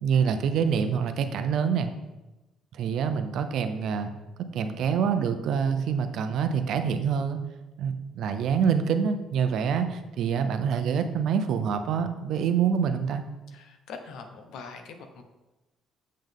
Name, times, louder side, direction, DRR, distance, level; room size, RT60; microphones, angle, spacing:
voice 1, 0.0-1.9 2.7-4.1 4.4-7.4 7.8-13.2, right 7 dB, 65° right, 8 dB, 0.6 m, -26 dB
voice 2, 13.5-15.2, left 5 dB, 75° left, 6 dB, 0.9 m, -43 dB
7.6 x 5.6 x 3.6 m, 1.0 s
cardioid pair, 130°, 0 cm